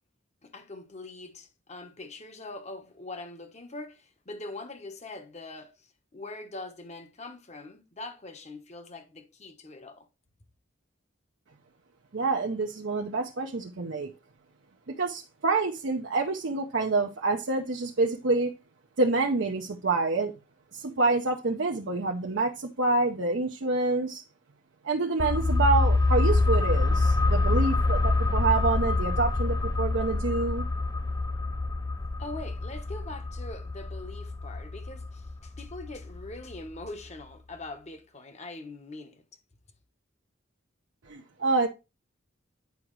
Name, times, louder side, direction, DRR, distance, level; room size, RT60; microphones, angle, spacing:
voice 1, 0.4-5.9 6.1-10.1 32.2-39.2, left 2 dB, 35° left, 1.0 m, -42 dB
voice 2, 12.1-14.1 14.9-18.5 19.0-20.3 20.7-24.2 24.8-30.6 41.1-41.7, right 3 dB, 65° right, 0.7 m, -27 dB
sound 1, 25.2-36.6 36.9-37.0, left 2 dB, 20° left, 0.5 m, -26 dB
9.4 x 4.9 x 3.1 m
head